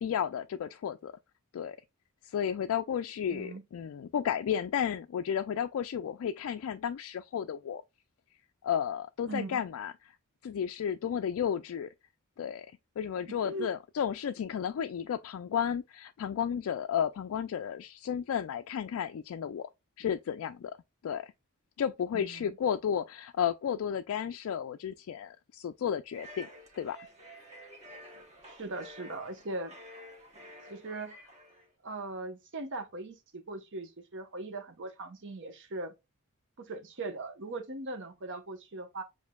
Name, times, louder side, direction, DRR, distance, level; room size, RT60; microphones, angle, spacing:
voice 1, 0.0-1.1 1.5-1.8 2.2-7.8 8.6-10.2 10.4-11.9 12.4-19.7 20.0-20.8 21.0-21.3 21.8-26.5 26.8-27.0, left 8 dB, 65° left, 0.3 m, -33 dB
voice 2, 3.3-3.6 9.3-9.6 13.3-13.7 22.1-22.6 28.5-29.7 30.7-31.2 31.8-35.9 36.6-39.0, right 2 dB, 55° right, 0.9 m, -40 dB
sound 1, 26.1-31.7, equal, 30° right, 1.2 m, -50 dB
7.1 x 2.6 x 2.2 m
head